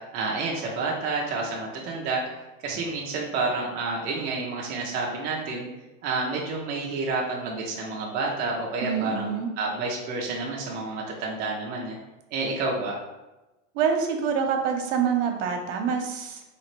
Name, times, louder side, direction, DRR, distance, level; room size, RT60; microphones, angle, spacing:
voice 1, 0.0-2.2 2.6-5.7 6.0-12.0 12.3-13.0, right 3 dB, 25° right, -2 dB, 0.4 m, -29 dB
voice 2, 8.8-9.5 13.7-16.4, right 6 dB, 70° right, 3 dB, 0.8 m, -26 dB
4.0 x 2.9 x 3.0 m, 1.0 s
supercardioid pair, 150°, 39 cm